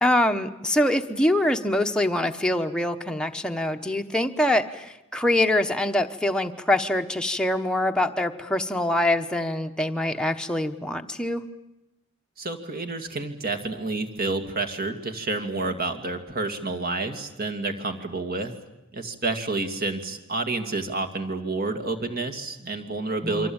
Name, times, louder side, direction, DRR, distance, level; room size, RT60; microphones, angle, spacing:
voice 1, 0.0-11.4 23.2-23.5, left 1 dB, 5° left, 4 dB, 1.1 m, -24 dB
voice 2, 12.4-18.5 18.9-23.5, right 3 dB, 45° right, 5 dB, 2.5 m, -29 dB
28.0 x 24.0 x 8.9 m, 0.92 s
head